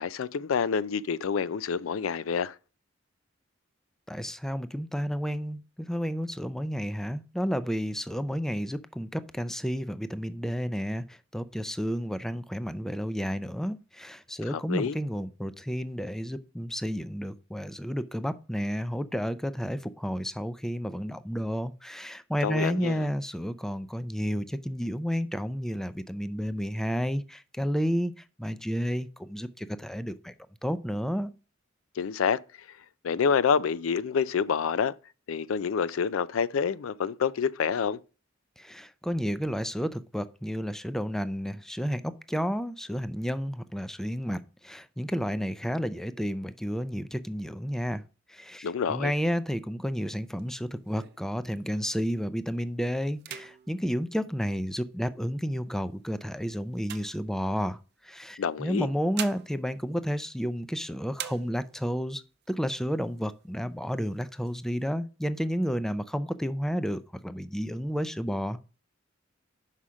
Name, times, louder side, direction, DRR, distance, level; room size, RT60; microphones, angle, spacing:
voice 1, 0.0-2.5 14.5-15.0 22.4-23.1 32.0-32.4 33.0-34.9 35.3-38.0 48.6-49.1 58.4-58.9, left 6 dB, 90° left, 0.4 m, -27 dB
voice 2, 4.1-30.3 30.6-31.3 38.6-48.0 48.3-57.8 58.0-68.6, equal, ahead, 0.4 m, -31 dB
sound 1, 49.9-52.1 52.5-52.8 53.1-55.0 55.7-57.9 58.7-60.8 61.1-62.0 62.4-62.5 62.8-63.5 63.9-64.8, right 10 dB, 55° right, 0.6 m, -44 dB
5.7 x 4.9 x 6.2 m
head